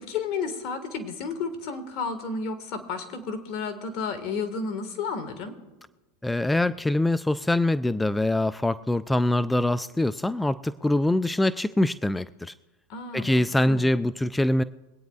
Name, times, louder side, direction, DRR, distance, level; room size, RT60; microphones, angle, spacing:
voice 1, 0.0-5.5 12.9-13.9, left 4 dB, 55° left, 7 dB, 1.6 m, -32 dB
voice 2, 6.2-12.5 13.1-14.6, left 1 dB, 5° left, 15 dB, 0.3 m, -24 dB
24.0 x 9.0 x 2.4 m, 1.2 s
hypercardioid pair, 105°, 0 cm